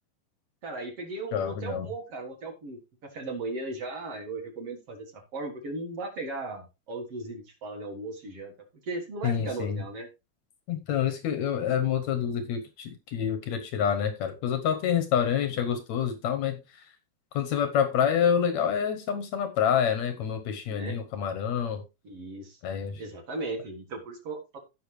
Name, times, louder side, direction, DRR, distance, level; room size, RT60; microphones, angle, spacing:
voice 1, 0.6-2.8 3.1-8.5 8.8-10.1 20.7-21.0 22.0-22.6 23.0-24.6, right 2 dB, 50° right, 3 dB, 1.9 m, -37 dB
voice 2, 1.3-1.9 9.2-9.8 10.7-16.9 17.3-21.8 22.6-23.0, left 8 dB, 75° left, 8 dB, 1.6 m, -27 dB
15.5 x 5.6 x 3.2 m, 0.26 s
omnidirectional pair, 4.6 m